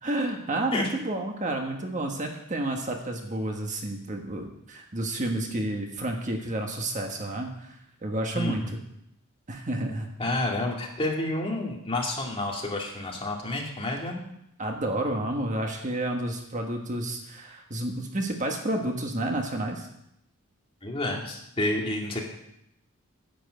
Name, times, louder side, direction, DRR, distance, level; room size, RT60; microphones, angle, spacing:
voice 1, 0.0-8.8 9.5-10.1 14.6-19.9, right 1 dB, 35° right, 3 dB, 1.4 m, -30 dB
voice 2, 10.2-14.2 20.8-22.2, left 2 dB, 25° left, -1 dB, 2.3 m, -29 dB
10.5 x 7.7 x 7.8 m, 0.78 s
head